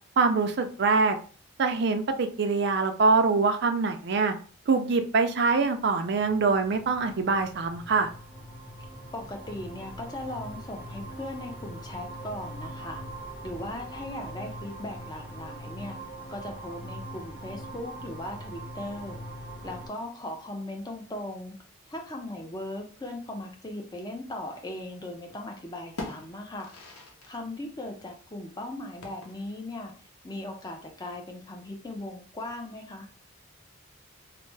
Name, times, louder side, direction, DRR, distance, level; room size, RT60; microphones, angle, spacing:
voice 1, 0.2-1.2 1.6-4.3 4.7-8.1, right 4 dB, 50° right, 6 dB, 0.4 m, -24 dB
sound 1, 5.5-19.9, right 1 dB, 45° left, 1.3 m, -42 dB
voice 2, 9.1-13.0 13.4-16.0 16.3-19.2 19.6-21.6 21.9-26.7 27.3-29.9 30.2-33.1, left 1 dB, 20° left, 2 dB, 0.5 m, -38 dB
sound 2, 24.7-25.4 25.7-27.4 27.6-27.7 29.0-29.7, left 2 dB, 90° left, 0.7 m, -43 dB
3.2 x 2.0 x 3.2 m, 0.40 s
head